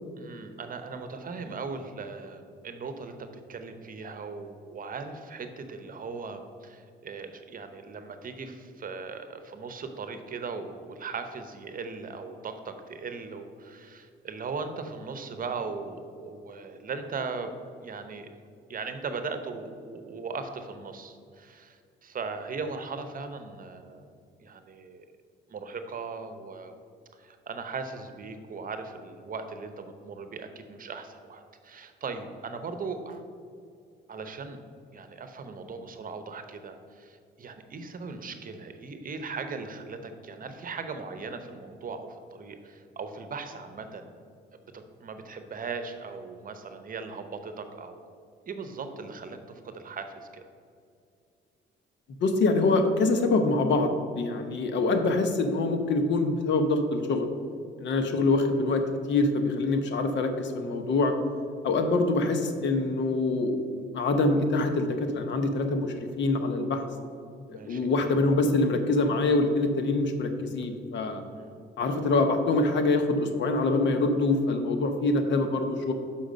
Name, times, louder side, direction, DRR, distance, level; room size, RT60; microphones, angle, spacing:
voice 1, 0.2-17.5 17.8-18.3 18.7-25.0 25.5-26.7 27.2-33.2 34.1-34.6 34.9-44.1 44.7-48.0 48.5-50.4 67.5-67.9 71.3-71.6, right 4 dB, 45° right, 8 dB, 0.8 m, -38 dB
voice 2, 52.2-57.3 57.8-58.8 59.1-61.1 61.6-63.5 63.9-66.8 67.5-71.2 71.8-75.9, left 3 dB, 65° left, 7 dB, 0.9 m, -25 dB
6.5 x 5.7 x 5.1 m, 2.3 s
cardioid pair, 90°, 20 cm